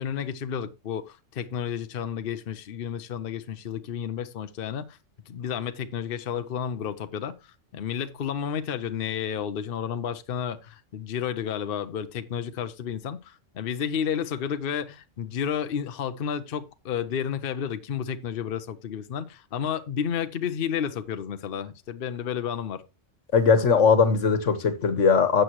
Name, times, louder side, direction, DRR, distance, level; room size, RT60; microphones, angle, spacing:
voice 1, 0.0-5.0 5.3-22.8, left 8 dB, 55° left, 0.9 m, -31 dB
voice 2, 23.3-25.4, left 5 dB, 85° left, 1.6 m, -20 dB
12.5 x 7.8 x 3.0 m
omnidirectional pair, 1.2 m